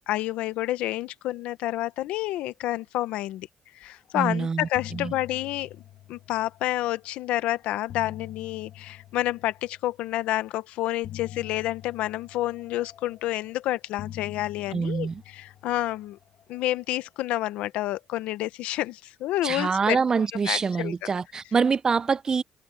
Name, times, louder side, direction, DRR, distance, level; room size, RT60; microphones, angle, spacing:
voice 1, 0.1-3.5 3.7-5.8 6.1-16.2 16.5-20.0 20.4-20.9, left 15 dB, 85° left, 0.9 m, -29 dB
sound 1, 4.1-4.3 4.6-6.9 7.6-10.0 11.0-13.5 14.0-16.6, left 12 dB, 65° left, 1.2 m, -45 dB
voice 2, 4.1-5.1 14.7-15.2 19.4-22.4, right 5 dB, 35° right, 0.5 m, -25 dB
cardioid pair, 90°, 2 cm